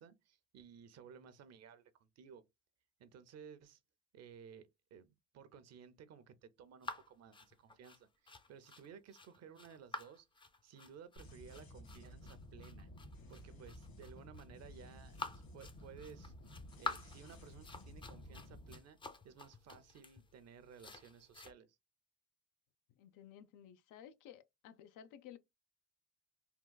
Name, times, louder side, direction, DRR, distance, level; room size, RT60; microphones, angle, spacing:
voice 1, 0.0-2.4 3.0-3.8 4.1-10.3 10.6-12.9 13.3-19.0 19.2-21.8, right 7 dB, 55° right, 0.5 m, -57 dB
sound 1, 6.8-21.5, left 3 dB, 15° left, 0.4 m, -49 dB
sound 2, 11.2-18.8, left 1 dB, 60° left, 1.5 m, -54 dB
voice 2, 23.0-25.4, left 10 dB, 85° left, 0.5 m, -55 dB
3.6 x 2.3 x 2.2 m
cardioid pair, 100°, 31 cm